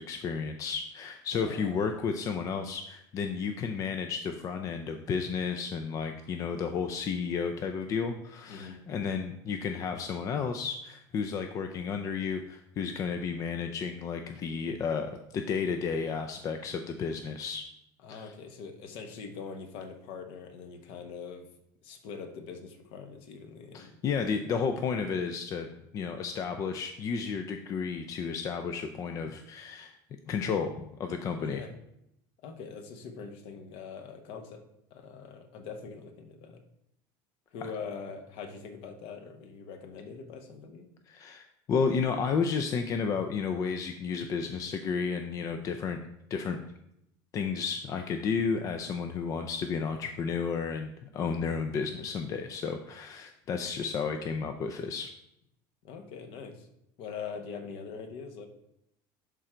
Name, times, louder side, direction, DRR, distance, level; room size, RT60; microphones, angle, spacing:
voice 1, 0.0-17.6 18.1-18.3 23.7-25.7 25.9-29.9 30.3-31.6 41.1-46.0 46.3-46.6 47.3-55.1, left 5 dB, 35° left, 6 dB, 0.5 m, -32 dB
voice 2, 1.4-2.0 8.5-8.8 18.0-21.5 21.8-23.9 31.4-31.7 32.4-34.6 34.9-36.6 37.5-40.9 51.7-52.0 55.8-56.7 57.0-58.5, left 5 dB, 60° left, 7 dB, 1.2 m, -43 dB
11.0 x 3.8 x 4.5 m, 0.79 s
cardioid pair, 150°, 10 cm